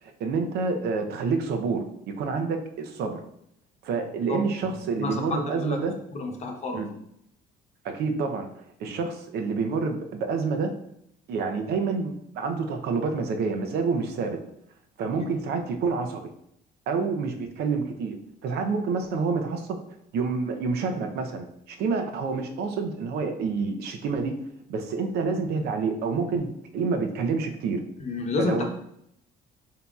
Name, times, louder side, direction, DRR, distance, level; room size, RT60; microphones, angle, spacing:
voice 1, 0.0-1.8 2.2-3.2 3.8-5.9 6.7-6.9 7.8-8.5 8.8-10.7 11.3-14.4 15.0-16.3 16.9-18.2 18.4-19.8 20.1-24.3 24.7-27.8 28.4-28.7, right 4 dB, 75° right, 5 dB, 0.7 m, -28 dB
voice 2, 4.9-5.8 6.1-6.8 28.0-28.6, left 3 dB, 40° left, 3 dB, 0.9 m, -30 dB
6.8 x 2.9 x 2.3 m, 0.74 s
cardioid pair, 110°, 17 cm